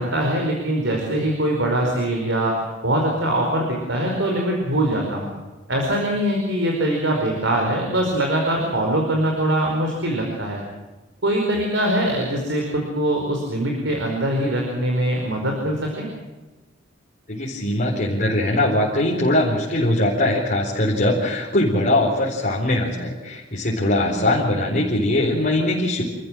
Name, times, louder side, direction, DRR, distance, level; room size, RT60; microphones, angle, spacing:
voice 1, 0.0-5.3 5.7-10.6 11.2-16.1, right 1 dB, 70° right, 1 dB, 4.8 m, -22 dB
voice 2, 17.3-26.0, left 1 dB, 45° left, -4 dB, 4.4 m, -21 dB
28.5 x 14.5 x 7.6 m, 1.2 s
head